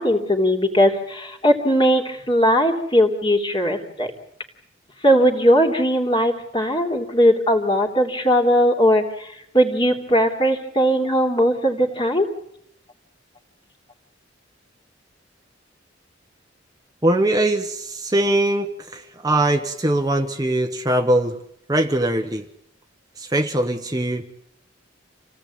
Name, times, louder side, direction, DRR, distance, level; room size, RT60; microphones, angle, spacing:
voice 1, 0.0-4.1 5.0-12.3, equal, 25° left, 3 dB, 3.3 m, -19 dB
voice 2, 17.0-21.4 21.7-22.4 23.2-24.3, right 1 dB, 20° right, 5 dB, 1.2 m, -21 dB
28.5 x 17.5 x 8.8 m, 0.77 s
head